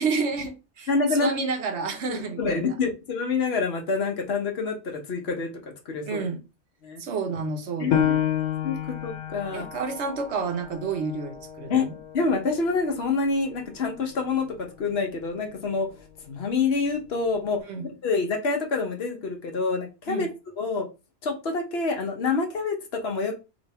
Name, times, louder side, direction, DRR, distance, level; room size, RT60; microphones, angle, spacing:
voice 1, 0.0-2.7 6.0-6.4 7.0-8.3 9.5-11.9 17.6-17.9 20.1-20.3, right 4 dB, 75° right, 5 dB, 1.1 m, -30 dB
voice 2, 0.9-1.3 2.1-6.2 6.8-7.0 7.8-8.2 8.6-9.7 11.7-11.9 12.1-14.5 14.8-15.9 16.3-20.3 20.6-20.9 21.2-23.4, left 4 dB, 65° left, 3 dB, 1.1 m, -27 dB
Piano, 7.9-13.1 13.6-13.7 14.3-14.8, left 10 dB, 85° left, 1.0 m, -30 dB
3.0 x 2.7 x 4.1 m, 0.28 s
omnidirectional pair, 1.2 m